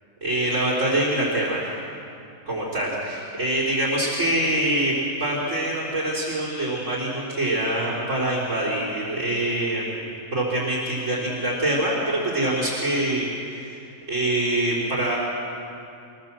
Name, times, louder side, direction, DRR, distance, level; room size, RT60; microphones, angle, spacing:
voice 1, 0.2-1.6 2.5-4.9 5.2-15.2, right 1 dB, 60° right, -7 dB, 4.3 m, -25 dB
26.0 x 17.0 x 7.5 m, 2.6 s
omnidirectional pair, 1.5 m